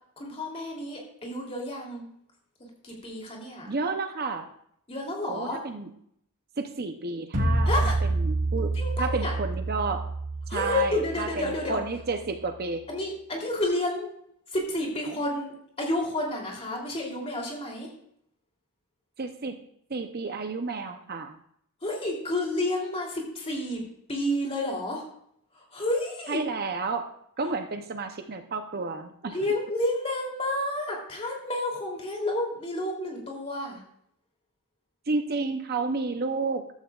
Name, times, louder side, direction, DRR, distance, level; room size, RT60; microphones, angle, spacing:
voice 1, 0.2-2.0 2.8-3.7 4.9-5.6 7.6-8.0 8.7-9.3 10.5-11.8 12.9-14.1 14.5-17.9 21.8-23.8 24.1-25.1 25.5-26.4 29.3-33.8, left 1 dB, 25° left, -1 dB, 3.1 m, -30 dB
voice 2, 3.7-4.5 5.3-5.9 6.6-7.9 8.2-8.7 9.0-10.1 10.5-12.8 19.2-19.6 19.9-21.4 26.3-27.1 27.4-29.4 35.1-36.7, right 4 dB, 45° right, 7 dB, 0.7 m, -31 dB
sound 1, 7.3-12.4, right 2 dB, 85° right, 1.8 m, -28 dB
14.5 x 12.5 x 2.4 m, 0.71 s
head